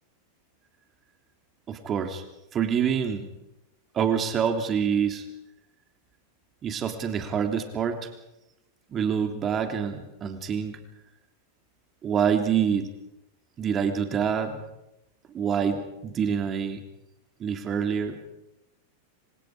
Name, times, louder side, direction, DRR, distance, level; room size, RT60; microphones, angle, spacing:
voice 1, 1.7-2.2 2.5-3.3 3.9-5.2 6.6-8.1 8.9-10.8 12.0-12.9 13.6-14.6 15.3-16.8 17.4-18.2, right 7 dB, 25° right, 6 dB, 3.2 m, -26 dB
27.0 x 26.5 x 5.1 m, 0.89 s
figure-of-eight pair, 90°, 0 cm